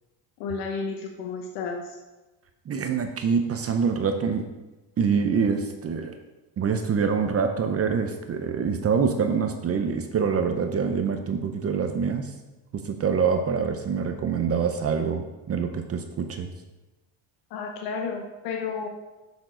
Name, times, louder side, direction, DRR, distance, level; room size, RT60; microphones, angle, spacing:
voice 1, 0.4-2.0 17.5-18.9, left 5 dB, 90° left, 2 dB, 1.1 m, -32 dB
voice 2, 2.7-4.5 5.0-6.1 6.6-12.3 12.7-16.5, right 6 dB, 30° right, 6 dB, 0.7 m, -25 dB
7.2 x 5.9 x 3.8 m, 1.1 s
supercardioid pair, 105°, 49 cm